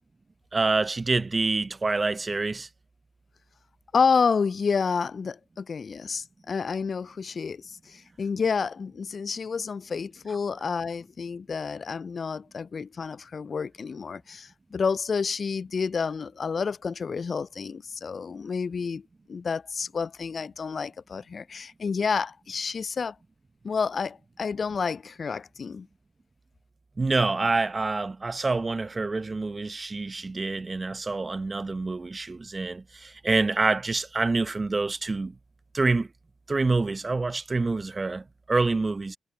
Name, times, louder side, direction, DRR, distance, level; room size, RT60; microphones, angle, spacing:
voice 1, 0.5-2.7 27.0-35.3 35.7-36.1 36.5-39.2, right 3 dB, 30° right, 1.0 m, -27 dB
voice 2, 3.9-19.0 19.3-23.2 23.6-25.9, left 5 dB, 45° left, 0.3 m, -29 dB
hypercardioid pair, 45°, 0 cm